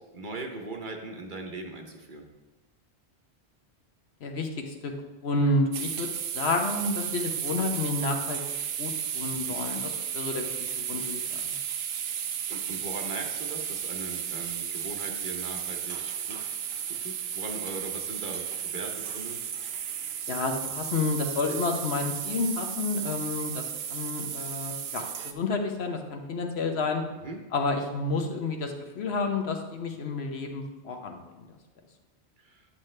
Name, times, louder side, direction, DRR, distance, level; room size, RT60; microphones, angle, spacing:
voice 1, 0.1-2.3 9.4-9.6 12.1-12.2 12.5-16.4 16.9-19.4 27.2-27.4 32.4-32.7, right 3 dB, 50° right, 2 dB, 1.0 m, -40 dB
voice 2, 4.2-4.9 5.2-6.1 6.3-8.4 8.8-11.5 20.3-23.6 23.9-27.0 27.5-31.5, left 3 dB, 70° left, 4 dB, 1.1 m, -30 dB
sound 1, 5.7-25.3, right 8 dB, 70° right, 0.8 m, -34 dB
9.9 x 6.5 x 3.2 m, 1.1 s
omnidirectional pair, 1.1 m